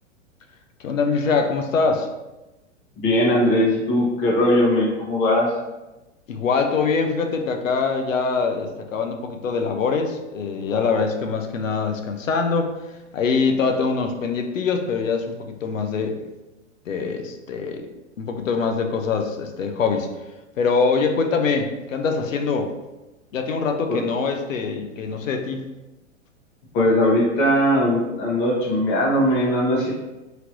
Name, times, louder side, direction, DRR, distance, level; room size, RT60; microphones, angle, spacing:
voice 1, 0.8-2.1 6.3-12.7 13.1-16.2 16.9-17.9 18.2-20.1 20.6-22.7 23.3-25.6, left 5 dB, 85° left, 5 dB, 0.6 m, -23 dB
voice 2, 3.0-5.5 23.9-24.0 26.7-29.9, left 1 dB, 40° left, -3 dB, 1.0 m, -19 dB
3.0 x 2.9 x 2.5 m, 1.0 s
hypercardioid pair, 105°, 38 cm